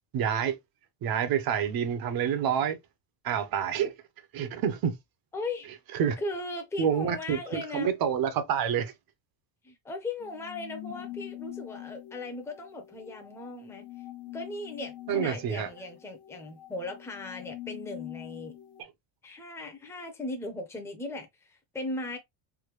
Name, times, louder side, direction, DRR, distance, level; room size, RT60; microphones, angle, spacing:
voice 1, 0.1-0.6 1.0-2.8 3.2-3.9 4.3-5.0 5.9-6.2 6.8-8.9 15.1-15.7 18.8-18.9, right 8 dB, 50° right, 0.9 m, -28 dB
voice 2, 5.3-5.7 6.2-7.9 9.6-13.9 14.3-18.5 19.2-22.2, left 2 dB, 5° left, 0.7 m, -38 dB
sound 1, 10.2-18.8, left 15 dB, 55° left, 0.7 m, -44 dB
3.5 x 2.1 x 3.1 m
cardioid pair, 130°, 47 cm